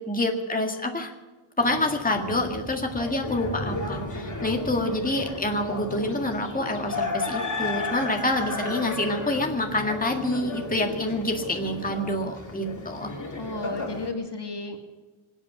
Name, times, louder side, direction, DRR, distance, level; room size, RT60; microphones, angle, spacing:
voice 1, 0.1-1.1 1.6-13.1, left 1 dB, 15° left, 2 dB, 1.9 m, -27 dB
sound 1, 1.6-14.1, left 2 dB, 35° left, 2.9 m, -34 dB
voice 2, 13.4-14.8, left 3 dB, 55° left, 4 dB, 2.1 m, -33 dB
26.0 x 8.9 x 6.1 m, 1.2 s
wide cardioid pair, 90°, 50 cm